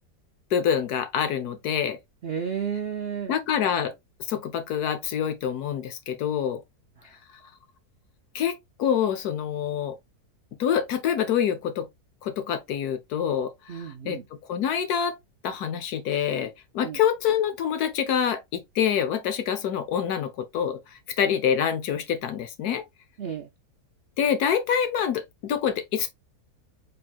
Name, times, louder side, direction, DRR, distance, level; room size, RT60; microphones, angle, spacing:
voice 1, 0.5-2.0 3.3-3.9 4.3-6.6 8.3-10.0 10.6-11.9 12.2-14.2 14.5-15.2 15.4-22.8 24.2-26.1, left 8 dB, 70° left, 1.3 m, -26 dB
voice 2, 2.2-3.3 7.0-7.1 13.7-14.2 16.8-17.0 23.2-23.5, right 7 dB, 85° right, 0.5 m, -32 dB
4.4 x 3.8 x 2.3 m
omnidirectional pair, 1.8 m